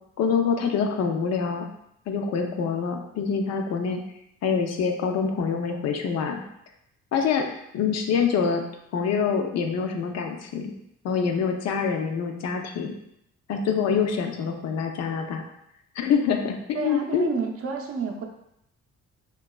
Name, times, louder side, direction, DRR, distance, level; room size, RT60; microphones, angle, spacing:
voice 1, 0.2-1.7 2.1-4.0 4.4-6.4 7.1-7.5 7.7-8.6 8.9-10.7 11.0-12.9 13.5-15.4 16.0-17.3, left 6 dB, 60° left, 4 dB, 0.4 m, -25 dB
voice 2, 16.7-18.2, right 5 dB, 50° right, 2 dB, 0.5 m, -30 dB
2.9 x 2.3 x 2.3 m, 0.78 s
cardioid pair, 90°, 30 cm